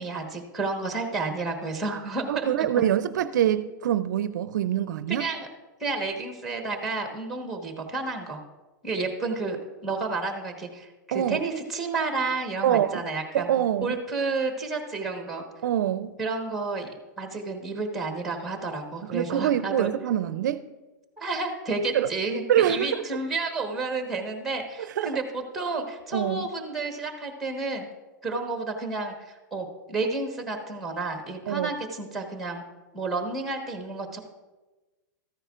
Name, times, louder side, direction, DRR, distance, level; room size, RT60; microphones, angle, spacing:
voice 1, 0.0-2.7 5.1-5.5 5.8-8.4 8.8-9.6 9.8-13.5 13.8-15.4 16.2-16.9 17.2-19.9 21.2-27.9 28.2-32.6 32.9-34.2, right 3 dB, ahead, 3 dB, 1.3 m, -31 dB
voice 2, 2.3-5.3 11.1-11.4 12.6-13.0 13.3-14.0 15.6-16.2 19.1-20.6 21.9-22.1 22.5-23.1 25.0-25.1 26.1-26.5 31.5-31.7, right 11 dB, 65° right, 13 dB, 0.4 m, -25 dB
14.0 x 9.8 x 2.5 m, 1.2 s
hypercardioid pair, 155°, 11 cm